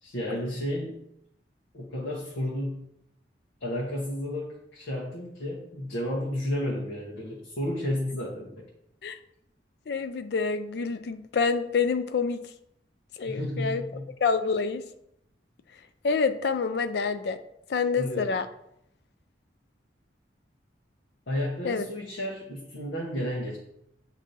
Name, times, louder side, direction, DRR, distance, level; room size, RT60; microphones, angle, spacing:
voice 1, 0.0-1.1 1.7-2.9 3.6-8.6 13.3-14.0 18.0-18.3 21.3-23.6, left 1 dB, 80° left, -4 dB, 0.9 m, -32 dB
voice 2, 9.9-12.4 13.2-13.8 14.2-14.8 16.0-17.4 17.7-18.5 21.6-21.9, left 5 dB, 60° left, 10 dB, 0.4 m, -27 dB
7.6 x 2.7 x 2.6 m, 0.76 s
head